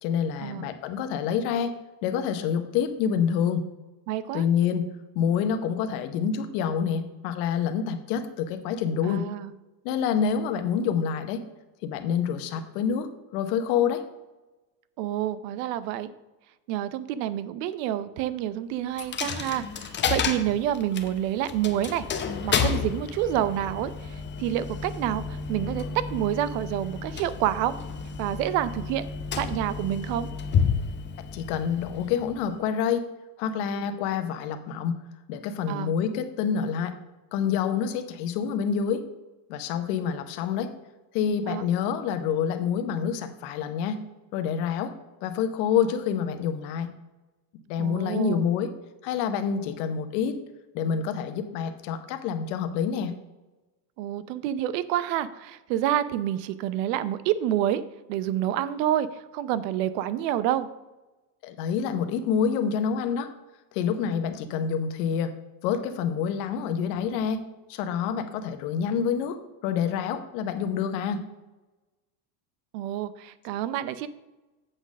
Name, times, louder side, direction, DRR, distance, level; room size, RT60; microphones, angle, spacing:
voice 1, 0.0-1.7 2.0-3.6 4.3-4.9 5.1-9.2 9.8-11.4 11.8-14.0 31.3-33.0 33.4-35.0 35.3-36.9 37.3-39.0 39.5-40.7 41.1-44.0 44.3-44.9 45.2-46.9 47.7-48.7 49.0-50.4 50.7-53.1 61.4-63.3 63.7-65.3 65.6-67.4 67.7-71.2, left 7 dB, 75° left, 9 dB, 1.0 m, -27 dB
voice 2, 4.1-4.4 9.0-9.5 15.0-16.1 16.7-22.1 22.4-27.8 28.2-29.1 29.4-30.3 35.7-35.9 41.5-41.6 47.8-48.5 54.0-57.8 58.1-60.7 72.7-74.1, right 11 dB, 85° right, 15 dB, 0.7 m, -28 dB
Coin (dropping), 19.0-32.7, left 6 dB, 25° left, 0.6 m, -31 dB
7.9 x 4.0 x 6.3 m, 1.1 s
supercardioid pair, 125°, 48 cm